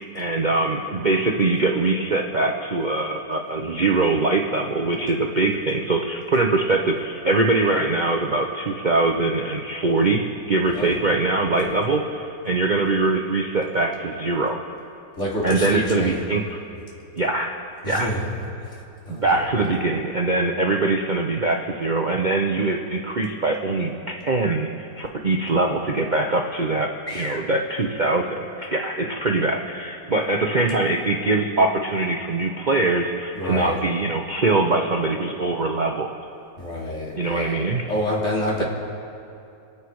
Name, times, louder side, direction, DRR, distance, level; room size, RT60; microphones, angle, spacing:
voice 1, 0.0-14.6 15.4-16.6 17.2-17.5 17.8-18.1 19.1-26.9 27.1-36.1 37.2-37.9, right 2 dB, 60° right, 1 dB, 0.4 m, -22 dB
voice 2, 15.2-16.2 17.8-18.3 18.6-19.5 27.1-27.4 33.3-33.8 36.6-38.6, left 1 dB, 35° left, -4 dB, 3.2 m, -28 dB
29.0 x 10.0 x 4.8 m, 2.6 s
omnidirectional pair, 2.2 m